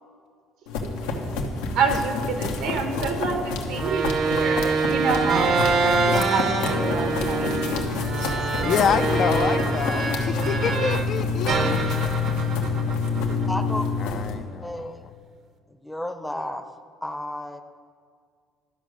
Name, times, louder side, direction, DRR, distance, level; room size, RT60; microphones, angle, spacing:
sound 1, 0.7-14.3, left 4 dB, 90° left, 1.1 m, -27 dB
voice 1, 1.7-9.0 9.4-9.8 11.2-11.5, right 5 dB, 75° right, 5 dB, 1.4 m, -28 dB
sound 2, 3.7-11.1 11.5-13.9, right 4 dB, 55° right, 0.9 m, -26 dB
voice 2, 8.6-11.9 12.3-12.5 14.0-15.1, left 7 dB, 55° left, 10 dB, 0.5 m, -27 dB
voice 3, 13.4-13.8 14.6-15.1 15.7-16.7 17.0-17.6, left 1 dB, 5° left, 8 dB, 0.7 m, -32 dB
12.5 x 5.1 x 6.3 m, 2.1 s
supercardioid pair, 80°, 0 cm